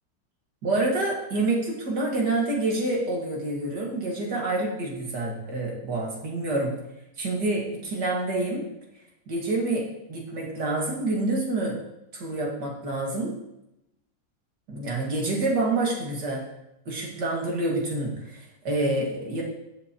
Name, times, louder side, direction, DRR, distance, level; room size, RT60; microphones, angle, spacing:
voice 1, 0.6-6.8 7.2-8.7 9.3-11.8 12.1-13.4 14.7-16.5 16.9-19.4, right 2 dB, 70° right, -2 dB, 2.5 m, -27 dB
13.5 x 8.1 x 3.0 m, 0.88 s
omnidirectional pair, 1.9 m